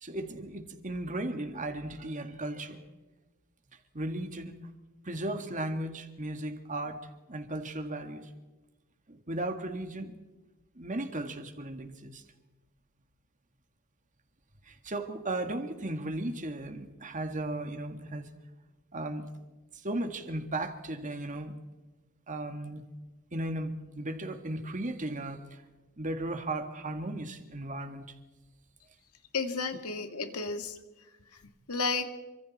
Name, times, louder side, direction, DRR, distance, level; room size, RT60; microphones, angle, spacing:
voice 1, 0.0-2.8 3.9-4.6 5.0-7.0 7.3-8.3 9.1-10.1 10.8-12.2 14.7-18.3 18.9-19.3 19.7-21.5 22.3-22.8 23.3-25.6 26.0-28.1, right 1 dB, 35° right, 6 dB, 1.9 m, -36 dB
voice 2, 29.3-30.7 31.7-32.1, left 4 dB, 75° left, 7 dB, 2.1 m, -32 dB
28.0 x 25.5 x 4.3 m, 1.1 s
head